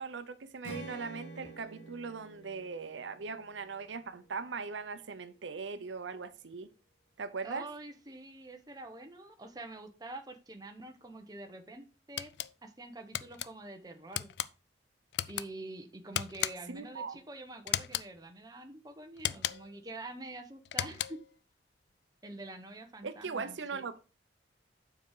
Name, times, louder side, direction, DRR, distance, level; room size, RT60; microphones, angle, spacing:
voice 1, 0.0-6.7 7.2-7.7 16.7-17.2 23.0-23.9, right 5 dB, 85° right, 0.7 m, -40 dB
Strum, 0.6-4.9, right 1 dB, 80° left, 1.8 m, -49 dB
voice 2, 7.4-12.3 12.6-14.3 15.3-21.2 22.2-23.8, right 2 dB, 20° right, 0.9 m, -46 dB
sound 1, 12.2-12.5 13.1-13.5 14.1-14.5 15.1-15.5 16.1-16.8 17.7-18.1 19.2-19.8 20.7-21.3, left 12 dB, 65° left, 0.3 m, -35 dB
6.9 x 4.9 x 4.7 m
head